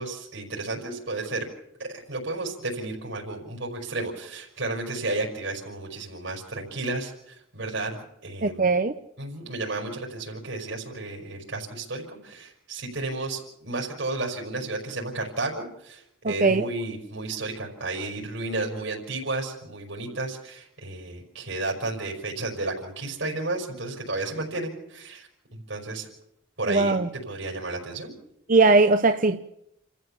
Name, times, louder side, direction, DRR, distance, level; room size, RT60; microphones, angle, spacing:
voice 1, 0.0-1.5 1.8-8.7 9.2-26.1 26.6-27.0 27.3-28.1, right 2 dB, 75° right, 5.3 m, -32 dB
voice 2, 8.4-8.9 16.2-16.7 26.7-27.1 28.5-29.4, right 3 dB, 45° right, 0.8 m, -20 dB
29.0 x 14.5 x 7.2 m
head